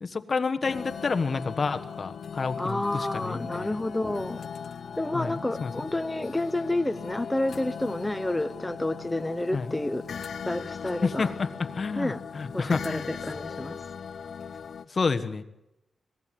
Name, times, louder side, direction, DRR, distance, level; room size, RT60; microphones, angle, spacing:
voice 1, 0.0-3.7 5.1-5.7 9.5-9.7 11.0-13.1 14.9-15.4, left 4 dB, 40° left, 1.4 m, -29 dB
sound 1, 0.6-14.9, left 7 dB, 60° left, 1.1 m, -39 dB
voice 2, 2.6-4.4 5.0-11.3 12.0-12.2 12.5-13.8, left 1 dB, 10° left, 1.0 m, -30 dB
26.5 x 18.5 x 7.6 m
wide cardioid pair, 135°, 0 cm